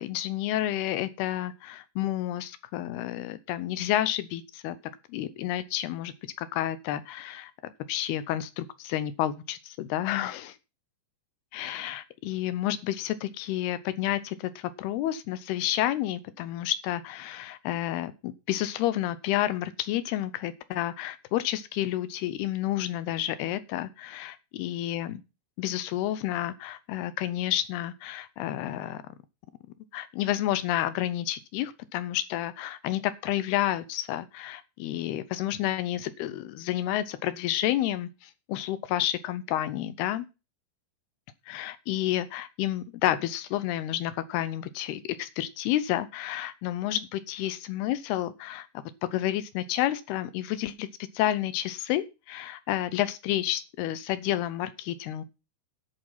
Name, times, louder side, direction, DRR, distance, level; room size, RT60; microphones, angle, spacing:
voice 1, 0.0-4.8 5.1-6.1 6.4-10.6 11.5-25.2 25.6-29.0 29.9-40.3 41.5-48.7 49.0-50.9 51.1-55.3, left 13 dB, 80° left, 14 dB, 2.4 m, -30 dB
11.0 x 8.5 x 5.5 m, 0.29 s
omnidirectional pair, 5.3 m